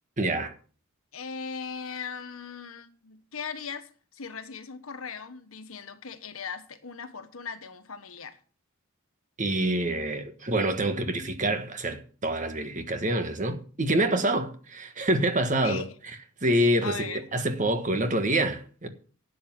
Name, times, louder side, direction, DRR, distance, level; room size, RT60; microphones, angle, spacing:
voice 1, 0.2-0.5 9.4-15.8 16.4-18.9, right 1 dB, 35° right, 1.4 m, -26 dB
voice 2, 1.1-8.4 15.6-15.9 16.8-17.2, left 6 dB, 85° left, 1.4 m, -38 dB
11.5 x 7.9 x 6.1 m
head